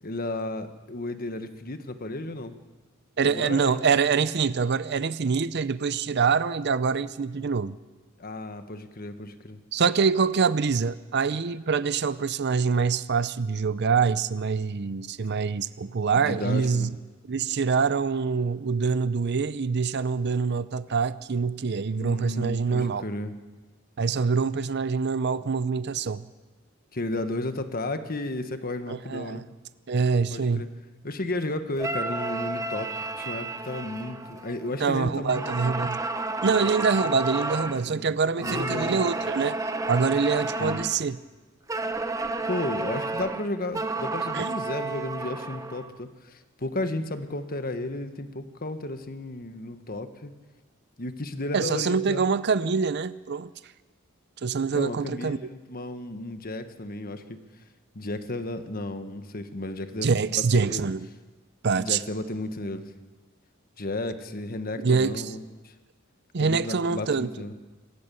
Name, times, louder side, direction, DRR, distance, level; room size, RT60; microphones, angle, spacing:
voice 1, 0.0-2.6 3.2-3.8 8.2-9.6 16.1-16.9 21.9-23.3 26.9-29.4 30.3-30.7 31.0-35.7 37.9-38.0 38.4-39.0 40.6-40.8 42.5-50.3 51.0-52.2 54.7-57.4 57.9-60.4 60.7-60.8 61.8-62.9 63.8-65.7 66.4-67.5, left 2 dB, 45° left, 9 dB, 1.4 m, -33 dB
voice 2, 3.2-7.8 9.7-17.0 17.3-23.0 24.0-26.3 28.9-29.5 29.9-30.7 34.8-36.0 36.4-39.6 39.9-41.2 44.3-44.5 51.5-53.5 54.4-55.5 60.0-61.1 61.6-62.0 64.8-65.3 66.3-67.3, right 5 dB, 55° right, 15 dB, 0.6 m, -25 dB
sound 1, 31.8-34.9 35.3-37.9 38.4-41.0 41.7-45.9, right 2 dB, 15° right, 1.0 m, -31 dB
26.5 x 15.0 x 7.0 m, 1.3 s
head